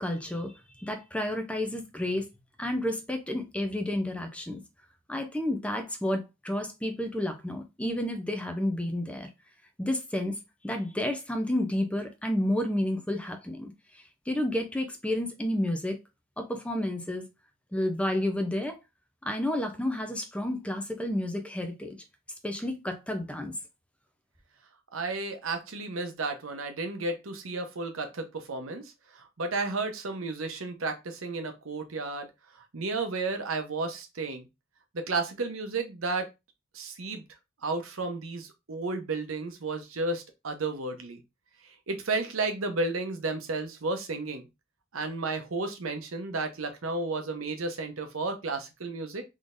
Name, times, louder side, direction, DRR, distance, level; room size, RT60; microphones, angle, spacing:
voice 1, 0.0-2.3 2.6-4.6 5.1-9.3 9.8-10.3 10.6-16.0 16.4-17.2 17.7-18.7 19.2-22.0 22.4-23.5, left 1 dB, 5° left, 0.6 m, -31 dB
voice 2, 24.9-32.3 32.5-34.5 34.9-36.3 36.7-37.2 37.6-41.2 41.9-44.5 44.9-49.2, right 3 dB, 85° right, 0.8 m, -32 dB
3.8 x 3.2 x 2.5 m
head